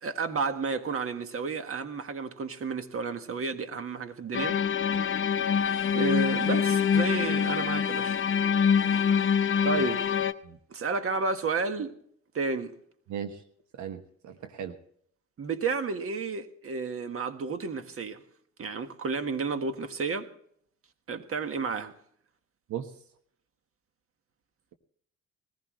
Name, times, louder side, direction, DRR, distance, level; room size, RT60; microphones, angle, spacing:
voice 1, 0.0-4.6 4.9-5.4 5.9-8.2 9.6-10.0 10.7-12.0 12.3-12.7 15.4-18.2 18.6-20.3 21.1-21.9, right 4 dB, 45° right, 1.6 m, -31 dB
sound 1, 4.3-10.3, left 7 dB, 40° left, 0.9 m, -25 dB
voice 2, 13.1-13.4 13.8-14.8 22.7-22.9, right 9 dB, 70° right, 1.3 m, -37 dB
20.0 x 15.5 x 3.2 m
cardioid pair, 90°, 30 cm